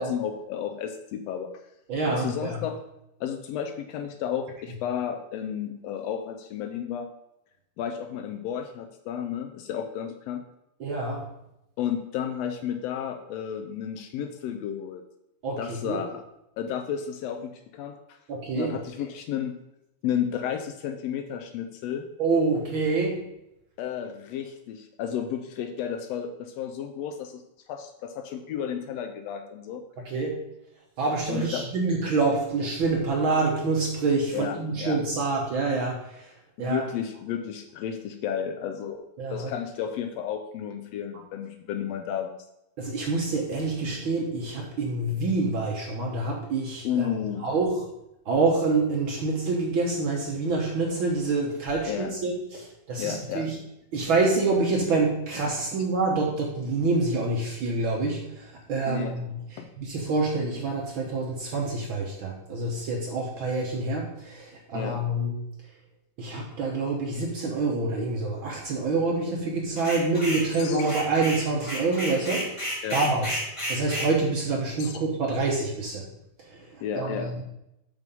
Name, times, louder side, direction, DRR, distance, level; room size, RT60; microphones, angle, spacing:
voice 1, 0.0-1.5 2.1-2.8 3.2-7.1 7.8-10.4 11.8-15.0 15.6-16.2 16.6-18.2 18.5-19.6 20.0-22.1 23.8-27.4 27.7-29.8 31.3-31.7 34.3-35.0 36.6-39.0 39.3-42.4 46.8-47.4 51.9-52.1 53.0-53.6 58.9-59.1 59.6-59.7 64.7-65.0 70.6-70.8 72.8-73.0 74.8-75.0 76.8-77.4, left 8 dB, 85° left, 7 dB, 1.4 m, -32 dB
voice 2, 1.9-2.6 10.8-11.3 15.4-16.0 18.3-18.8 22.2-23.2 30.0-30.4 31.0-36.3 36.6-36.8 39.2-39.5 42.8-47.1 47.4-47.8 48.3-53.5 53.9-65.4 66.2-72.5 72.9-73.4 73.7-76.0 76.5-77.4, right 3 dB, 70° right, -1 dB, 1.2 m, -27 dB
sound 1, 69.8-70.5 70.8-74.1, equal, 20° left, 0.8 m, -32 dB
6.0 x 5.6 x 5.3 m, 0.84 s
omnidirectional pair, 3.5 m